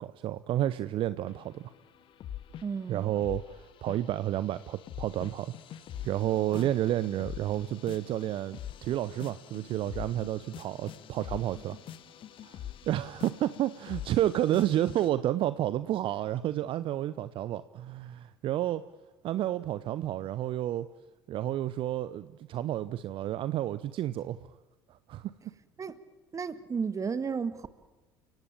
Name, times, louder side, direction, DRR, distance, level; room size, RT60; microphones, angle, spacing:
voice 1, 0.0-1.7 2.9-5.5 6.0-11.8 12.4-12.6 12.9-18.8 19.2-20.9 21.3-24.4 25.1-25.5, right 13 dB, 45° right, 15 dB, 0.8 m, -30 dB
Steamy Beat, 1.3-2.9 3.2-15.1, left 10 dB, 45° left, 1.5 m, -44 dB
voice 2, 2.6-3.1 6.5-6.7 25.8-26.0 26.3-27.7, right 5 dB, 25° right, 13 dB, 1.7 m, -33 dB
30.0 x 17.5 x 8.9 m, 1.2 s
figure-of-eight pair, 65°, 12 cm